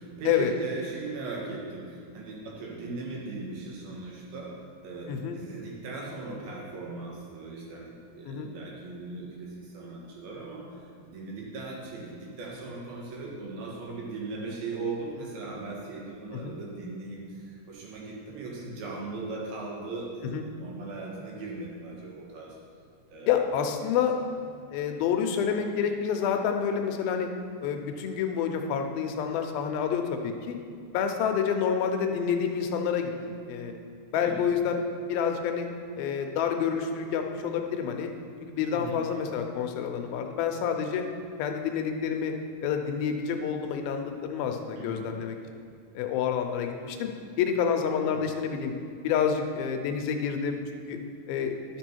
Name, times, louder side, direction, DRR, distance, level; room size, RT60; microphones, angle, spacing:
voice 1, 0.0-4.5 4.8-10.8 11.0-22.6 23.1-23.3 34.2-34.4 38.7-39.0 44.8-45.0 48.0-48.3, right 3 dB, 75° right, -3 dB, 3.3 m, -38 dB
voice 2, 5.1-5.4 8.3-8.5 16.3-16.5 20.3-20.4 23.3-24.1 24.7-27.3 27.6-30.6 30.9-33.7 34.1-35.7 36.0-38.1 38.4-41.0 41.4-42.3 42.6-45.4 46.0-47.1 47.4-48.7 49.0-51.0 51.3-51.6, left 7 dB, 85° left, 4 dB, 2.5 m, -28 dB
11.5 x 6.2 x 4.5 m, 2.3 s
omnidirectional pair, 4.4 m